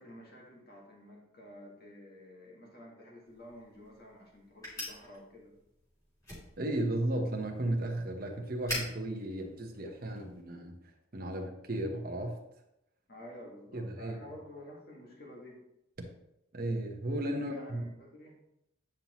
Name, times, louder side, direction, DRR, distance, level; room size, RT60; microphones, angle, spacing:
voice 1, 0.0-5.5 13.1-15.6 17.3-18.3, left 1 dB, 50° left, -2 dB, 1.9 m, -50 dB
sound 1, 3.3-10.4, left 1 dB, 15° left, 2.9 m, -45 dB
voice 2, 6.6-10.7 11.1-12.4 13.7-14.2 16.0-16.1 16.5-17.9, right 1 dB, 45° right, 2 dB, 1.0 m, -34 dB
8.9 x 5.7 x 3.0 m, 0.83 s
head